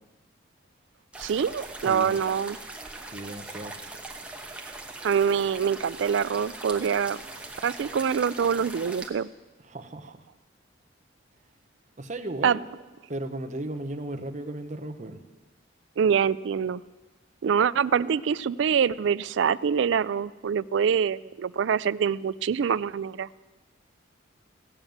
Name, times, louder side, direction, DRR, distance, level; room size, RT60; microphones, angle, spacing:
sound 1, 1.1-9.1, right 2 dB, 5° right, 1.1 m, -41 dB
voice 1, 1.2-2.6 5.0-7.2 7.6-9.3 12.4-12.6 16.0-16.8 17.4-23.3, right 7 dB, 70° right, 18 dB, 0.3 m, -25 dB
voice 2, 1.8-2.2 3.1-3.8 9.7-10.2 12.0-12.7 13.1-15.2, right 1 dB, 40° right, 6 dB, 0.9 m, -35 dB
16.0 x 7.2 x 9.2 m, 1.2 s
head